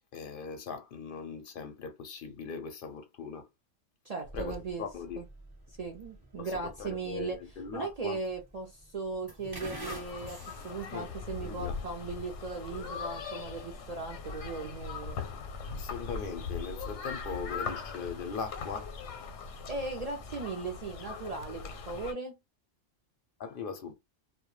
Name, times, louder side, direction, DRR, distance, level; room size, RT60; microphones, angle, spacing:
voice 1, 0.1-3.5 4.3-5.2 6.4-8.2 10.9-11.1 11.4-11.8 15.7-18.9 23.4-23.9, left 5 dB, 60° left, 0.6 m, -40 dB
voice 2, 4.0-4.9 5.2-5.3 5.8-7.4 7.7-10.4 10.6-15.2 19.6-22.4, right 3 dB, 60° right, 0.4 m, -38 dB
sound 1, 4.2-20.4, equal, 25° right, 0.6 m, -51 dB
sound 2, 9.8-22.1, left 5 dB, 85° left, 1.0 m, -40 dB
2.2 x 2.1 x 3.0 m
omnidirectional pair, 1.3 m